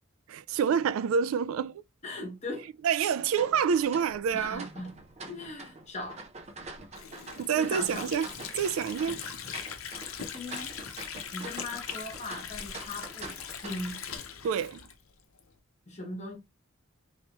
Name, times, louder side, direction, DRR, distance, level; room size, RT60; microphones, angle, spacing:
voice 1, 0.3-1.8 2.8-4.7 7.4-8.3 8.6-9.2 14.4-14.8, right 7 dB, 75° right, 0.3 m, -27 dB
voice 2, 2.0-2.7 4.3-4.9 5.3-6.2 7.6-8.1 10.3-10.7 11.3-14.0 15.9-16.4, left 2 dB, 35° left, 1.2 m, -39 dB
sound 1, 3.3-14.2, right 3 dB, 30° right, 0.7 m, -45 dB
Water / Sink (filling or washing), 6.9-15.5, left 8 dB, 80° left, 0.6 m, -41 dB
3.2 x 2.9 x 2.9 m
head